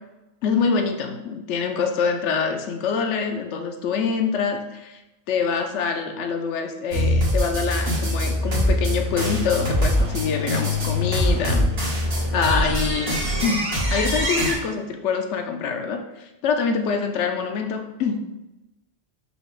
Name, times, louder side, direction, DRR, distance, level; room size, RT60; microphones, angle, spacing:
voice 1, 0.4-5.0 5.3-11.7 12.3-16.0 16.4-18.2, left 5 dB, 85° left, 5 dB, 0.9 m, -25 dB
sound 1, 6.9-14.5, left 1 dB, 55° right, 1.3 m, -23 dB
4.9 x 2.0 x 3.8 m, 0.99 s
omnidirectional pair, 1.2 m